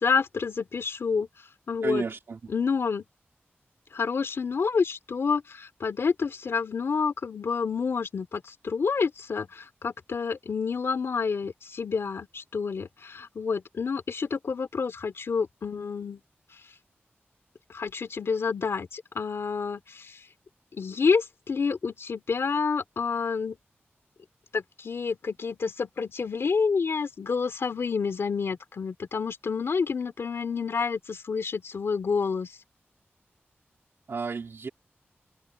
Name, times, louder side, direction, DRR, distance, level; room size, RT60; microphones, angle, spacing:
voice 1, 0.0-1.3 1.7-2.0 2.5-3.0 3.9-16.2 17.7-20.2 20.7-23.6 24.5-32.5, left 5 dB, 75° left, 2.7 m, -28 dB
voice 2, 1.8-2.4 34.1-34.7, right 4 dB, 65° right, 2.2 m, -32 dB
wide cardioid pair, 130°, 4 cm